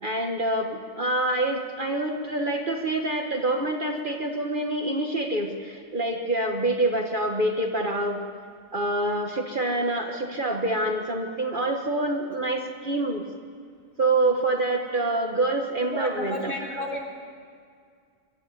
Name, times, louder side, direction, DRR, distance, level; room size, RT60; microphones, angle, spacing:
voice 1, 0.0-8.2 8.7-13.2 14.0-17.0, right 2 dB, 40° right, 2 dB, 1.6 m, -26 dB
voice 2, 15.9-17.0, left 1 dB, 40° left, -1 dB, 4.1 m, -32 dB
22.5 x 12.5 x 9.8 m, 2.2 s
omnidirectional pair, 1.4 m